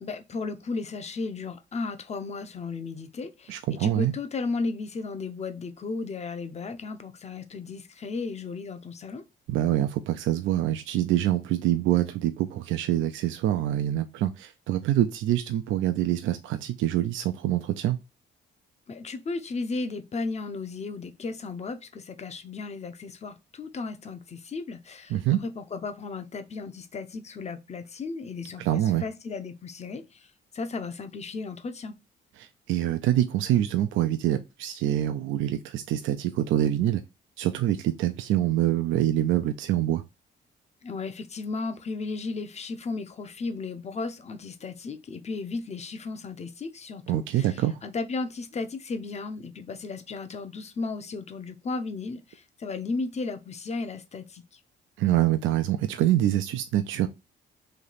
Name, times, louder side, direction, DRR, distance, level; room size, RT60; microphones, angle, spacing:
voice 1, 0.0-9.2 18.9-32.0 40.8-54.6, left 3 dB, 35° left, 0.6 m, -35 dB
voice 2, 3.5-4.1 9.5-18.0 25.1-25.4 28.6-29.0 32.4-37.0 37.4-40.0 47.1-47.8 55.0-57.1, right 13 dB, 80° right, 0.4 m, -25 dB
3.2 x 2.8 x 4.0 m
cardioid pair, 90°, 20 cm